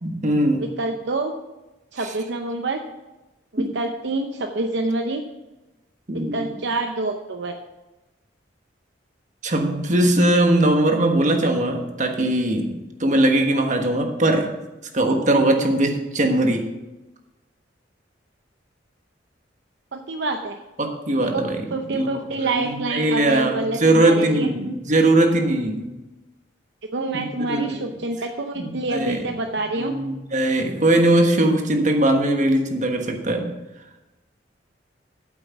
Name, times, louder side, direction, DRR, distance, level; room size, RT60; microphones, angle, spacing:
voice 1, 0.0-0.6 3.6-3.7 6.1-6.4 9.4-14.5 14.9-16.7 20.8-21.6 21.9-22.1 22.4-25.9 27.1-27.8 28.6-29.2 29.8-33.5, right 1 dB, 40° right, 4 dB, 1.4 m, -20 dB
voice 2, 0.6-1.3 1.9-2.8 3.5-5.2 6.3-7.5 19.9-20.6 21.2-21.4 21.7-24.5 26.9-29.9, right 2 dB, 65° right, 5 dB, 0.7 m, -27 dB
8.8 x 8.0 x 5.9 m, 1.1 s
head